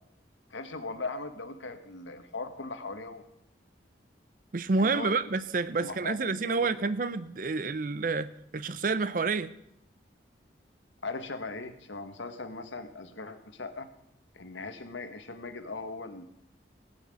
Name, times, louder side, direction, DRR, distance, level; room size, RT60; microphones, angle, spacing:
voice 1, 0.5-3.2 4.8-5.1 5.8-6.7 11.0-13.9 14.3-16.3, left 3 dB, 85° left, 1.5 m, -39 dB
voice 2, 4.5-9.5, right 4 dB, 45° right, 0.5 m, -29 dB
18.0 x 5.9 x 9.0 m
head